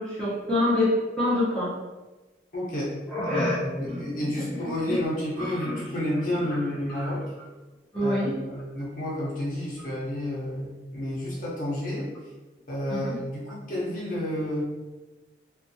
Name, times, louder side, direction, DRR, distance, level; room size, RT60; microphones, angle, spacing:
voice 1, 0.0-1.7 3.1-5.0 5.4-5.8 6.9-7.1 7.9-8.3 12.9-13.2, left 1 dB, 5° left, -10 dB, 0.7 m, -27 dB
voice 2, 2.5-2.9 3.2-7.2 8.0-12.1 12.7-14.6, left 1 dB, 50° left, -6 dB, 0.6 m, -30 dB
2.5 x 2.3 x 2.6 m, 1.2 s
head